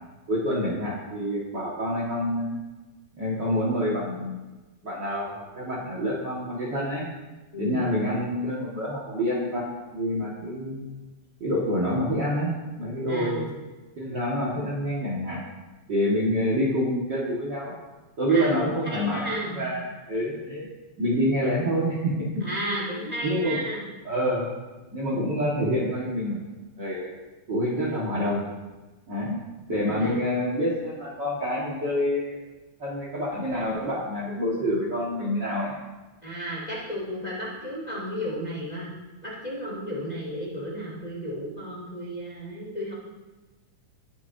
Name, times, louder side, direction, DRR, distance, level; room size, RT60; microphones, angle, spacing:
voice 1, 0.3-2.6 3.2-4.4 4.8-7.1 7.6-10.9 11.4-13.4 14.0-15.4 15.9-17.7 18.2-20.7 21.0-22.5 23.2-23.6 24.1-24.5 24.9-26.4 26.8-27.1 27.5-28.4 29.1-29.4 29.7-32.5 32.8-35.7, equal, 40° right, -5 dB, 1.9 m, -27 dB
voice 2, 7.5-7.9 13.1-13.5 18.3-19.7 22.4-23.9 29.8-30.3 36.2-38.9 39.2-42.9, equal, 15° left, -6 dB, 2.4 m, -33 dB
19.0 x 7.4 x 2.7 m, 1.2 s
omnidirectional pair, 3.6 m